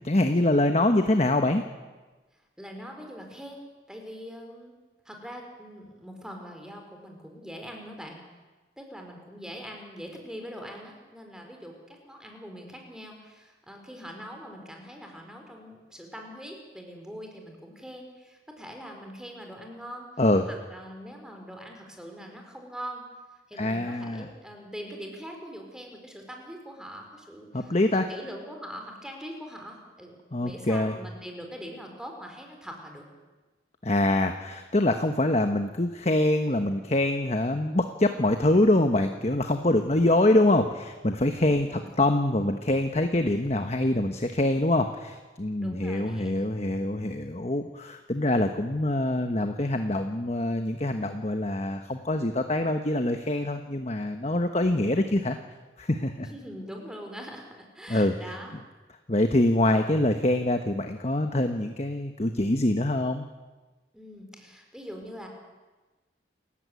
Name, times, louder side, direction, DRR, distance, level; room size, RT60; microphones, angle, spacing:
voice 1, 0.0-1.6 20.2-20.4 23.6-24.3 27.5-28.1 30.3-31.0 33.8-55.4 55.8-56.3 57.9-58.1 59.1-63.3, left 1 dB, 35° left, 6 dB, 1.2 m, -25 dB
voice 2, 2.6-3.6 3.9-4.7 5.0-8.2 8.8-20.1 20.7-23.0 23.5-33.1 39.8-39.9 41.4-41.9 45.6-46.4 56.2-58.5 63.9-65.3, equal, 5° right, 2 dB, 4.4 m, -42 dB
28.5 x 15.0 x 9.5 m, 1.2 s
head